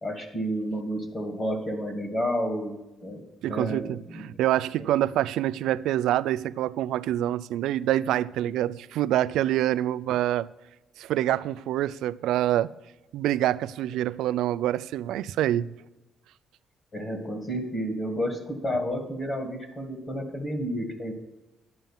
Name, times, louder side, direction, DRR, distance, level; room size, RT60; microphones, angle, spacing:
voice 1, 0.0-3.2 3.5-4.2 4.8-4.9 16.9-21.1, equal, 30° left, 1.9 m, -31 dB
voice 2, 3.4-10.5 11.0-12.7 13.1-15.7, right 13 dB, 85° right, 0.3 m, -26 dB
10.5 x 5.5 x 7.3 m
cardioid pair, 140°, 0 cm